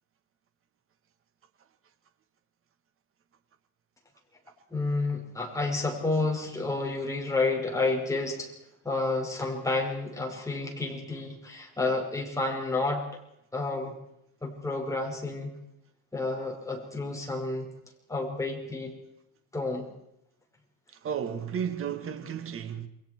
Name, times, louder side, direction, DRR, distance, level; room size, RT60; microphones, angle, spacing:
voice 1, 4.7-8.5 8.8-13.0 13.5-13.9 14.4-15.5 16.1-17.7 18.1-18.9 19.5-19.9, left 3 dB, 5° left, 5.5 m, -30 dB
voice 2, 21.0-22.9, right 8 dB, 30° right, 2.0 m, -33 dB
29.0 x 22.5 x 4.7 m
cardioid pair, 145°, 43 cm